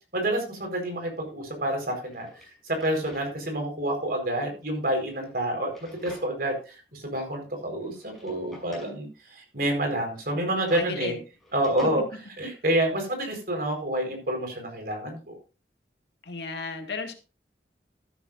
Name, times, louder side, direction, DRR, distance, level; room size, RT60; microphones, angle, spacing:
voice 1, 0.1-5.7 6.0-11.2 11.5-12.0 12.4-15.3, right 1 dB, 55° right, 3 dB, 4.6 m, -28 dB
Drawer open or close, 1.3-1.4 1.9-3.3 3.7-3.8 4.8-6.5 6.9-7.0 7.8-9.0 10.2-11.9, left 1 dB, ahead, 6.4 m, -49 dB
voice 2, 10.3-11.2 11.8-11.9 16.2-17.1, left 3 dB, 70° left, 4 dB, 2.3 m, -35 dB
13.5 x 12.5 x 2.6 m, 0.32 s
head